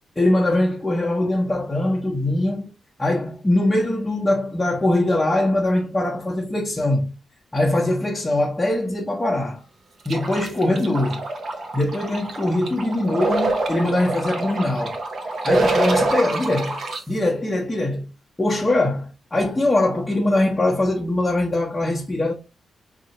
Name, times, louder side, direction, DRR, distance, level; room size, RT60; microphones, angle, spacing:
voice 1, 0.2-2.7 3.0-7.1 7.5-9.6 10.0-11.2 11.7-15.0 15.4-16.8 17.1-18.1 18.4-22.3, left 1 dB, 15° left, 0.8 m, -22 dB
sound 1, 10.1-17.0, right 2 dB, 60° right, 0.9 m, -25 dB
4.1 x 2.8 x 2.8 m
cardioid pair, 85°, 0 cm